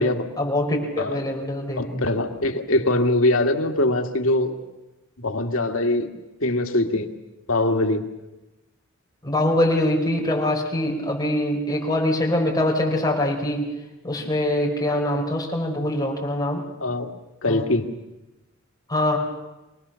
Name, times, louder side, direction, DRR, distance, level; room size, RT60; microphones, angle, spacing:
voice 1, 0.4-2.0 9.2-13.7 14.0-16.6 17.5-17.6 18.9-19.2, left 1 dB, 20° left, -1 dB, 5.0 m, -23 dB
voice 2, 1.8-4.5 5.2-6.1 6.4-7.1 7.5-8.1 16.8-17.2 17.4-17.9, left 2 dB, 90° left, 5 dB, 1.9 m, -22 dB
25.0 x 19.0 x 7.0 m, 1.0 s
head